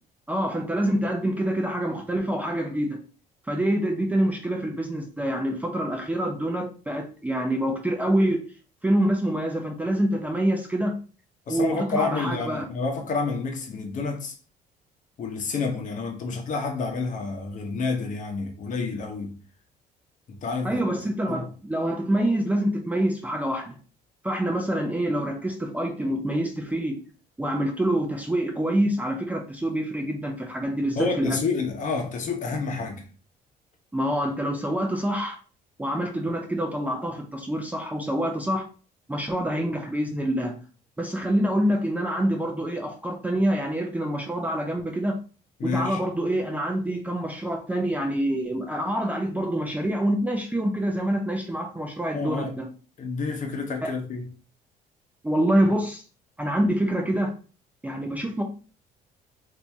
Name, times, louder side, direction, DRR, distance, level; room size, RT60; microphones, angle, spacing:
voice 1, 0.3-3.0 3.5-8.4 8.8-10.9 11.5-12.7 20.6-23.8 24.2-27.0 27.4-31.4 33.9-35.4 35.8-38.6 39.1-40.6 41.0-45.1 45.6-52.7 53.8-53.9 55.2-56.0 56.4-57.3 57.8-58.4, right 1 dB, 10° right, 0.5 m, -26 dB
voice 2, 11.5-14.3 15.2-19.4 20.3-20.8 21.3-21.5 31.0-33.0 45.6-46.0 52.1-52.6 53.0-54.2, left 4 dB, 50° left, 0.9 m, -29 dB
2.7 x 2.7 x 3.4 m
cardioid pair, 110°, 17 cm